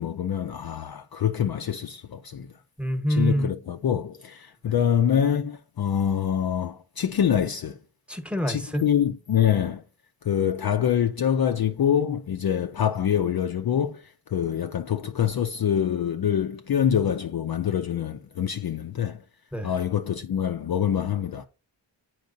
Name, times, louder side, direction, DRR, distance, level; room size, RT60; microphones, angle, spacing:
voice 1, 0.0-2.5 3.1-7.8 8.5-9.8 10.2-19.2 19.6-21.4, left 9 dB, 55° left, 0.5 m, -25 dB
voice 2, 2.8-3.5 4.7-4.8 8.1-8.8 19.5-19.7, equal, 5° right, 1.1 m, -26 dB
8.3 x 4.6 x 2.6 m
cardioid pair, 40°, 46 cm